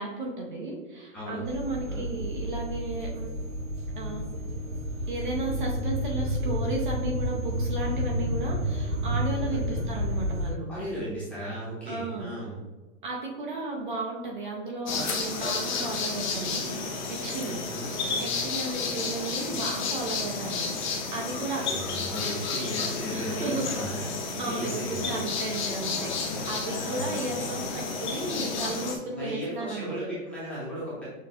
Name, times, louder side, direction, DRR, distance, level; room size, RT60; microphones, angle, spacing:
voice 1, 0.0-3.3 4.0-4.2 5.1-10.7 11.9-12.3 13.0-16.7 17.1-17.6 18.2-21.7 23.1-23.8 24.4-30.0, right 2 dB, 40° right, -1 dB, 0.6 m, -34 dB
sound 1, 1.5-10.5, equal, 80° right, 1.0 m, -30 dB
voice 2, 9.4-9.8 10.7-12.6 14.9-15.1 15.4-15.9 17.4-17.9 21.4-24.1 24.4-25.2 26.7-27.5 29.1-31.0, equal, 5° left, -11 dB, 0.8 m, -36 dB
sound 2, 14.9-29.0, left 4 dB, 35° left, 0.6 m, -31 dB
6.4 x 2.2 x 2.7 m, 1.2 s
hypercardioid pair, 165°, 40 cm